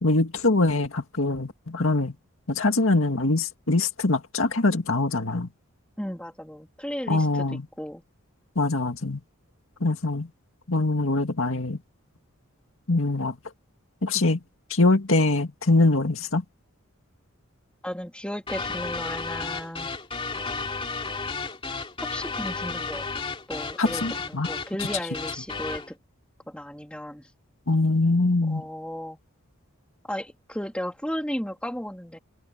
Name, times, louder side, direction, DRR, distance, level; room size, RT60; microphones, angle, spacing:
voice 1, 0.0-2.1 2.5-5.5 7.1-7.7 8.6-9.2 9.8-10.3 10.7-11.8 12.9-13.3 14.0-14.4 14.7-16.4 23.8-24.5 27.7-28.6, left 2 dB, 65° left, 2.0 m, -23 dB
voice 2, 6.0-7.3 7.8-8.0 17.8-19.9 22.0-26.0 26.5-27.3 28.4-29.2 30.1-32.2, equal, 5° left, 3.0 m, -34 dB
sound 1, 18.5-25.9, left 4 dB, 25° left, 3.1 m, -33 dB
head